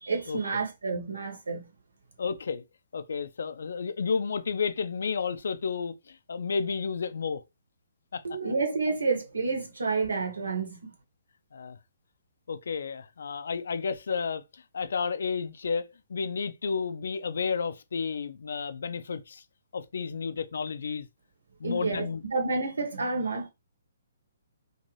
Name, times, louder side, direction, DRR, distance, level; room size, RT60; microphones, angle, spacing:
voice 1, 0.0-1.7 8.2-10.9 21.6-23.5, right 4 dB, 75° right, 1.0 m, -29 dB
voice 2, 2.2-2.6 2.9-7.4 8.1-8.2 11.5-11.8 12.5-19.4 19.7-21.1 21.6-22.2, left 5 dB, 65° left, 0.4 m, -32 dB
2.7 x 2.5 x 3.0 m
figure-of-eight pair, 130°, 0 cm